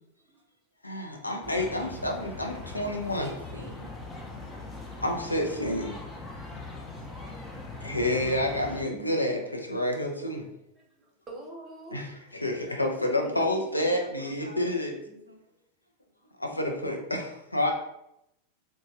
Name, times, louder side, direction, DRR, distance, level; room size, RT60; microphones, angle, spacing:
voice 1, 0.8-3.3 5.0-6.0 7.8-10.5 11.9-14.9 16.4-17.7, left 1 dB, 85° left, 2 dB, 0.5 m, -29 dB
sound 1, 1.4-8.8, left 2 dB, 15° left, 0.5 m, -41 dB
voice 2, 3.2-3.9 12.5-15.4 16.7-17.0, right 1 dB, 80° right, 1 dB, 0.5 m, -46 dB
voice 3, 4.5-5.0 10.8-12.0 12.2-12.4 12.8-12.9 13.2-13.3, right 2 dB, 20° right, -1 dB, 0.8 m, -46 dB
3.0 x 2.2 x 2.7 m, 0.82 s
figure-of-eight pair, 90°, 0 cm